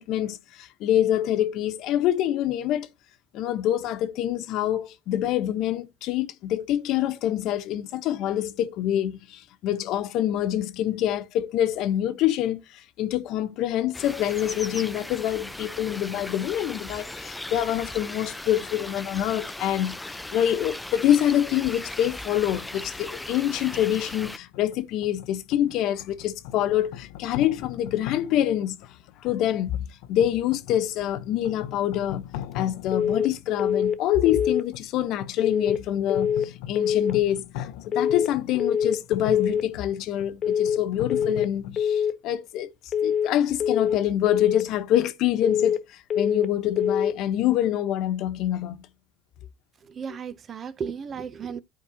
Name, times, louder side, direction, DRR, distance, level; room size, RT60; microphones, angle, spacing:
voice 1, 0.0-2.9 3.3-28.7 29.2-32.2 32.5-42.7 43.0-48.8, left 11 dB, 60° left, 1.0 m, -26 dB
sound 1, 13.9-24.4, left 2 dB, 5° left, 0.4 m, -38 dB
sound 2, 23.6-41.8, left 11 dB, 85° left, 0.6 m, -41 dB
sound 3, 32.9-33.3 33.6-34.0 34.3-34.7 35.4-35.8 36.1-36.5 36.8-37.2 37.9-38.3 38.6-39.0 39.3-39.7 40.4-40.8 41.1-41.5 41.8-42.2 42.9-43.3 43.6-44.0 44.3-44.7 45.4-45.8 46.1-46.5 46.8-47.2, left 8 dB, 40° left, 1.2 m, -24 dB
voice 2, 49.8-51.6, right 6 dB, 35° right, 0.6 m, -34 dB
13.0 x 4.6 x 2.9 m
supercardioid pair, 120°, 0 cm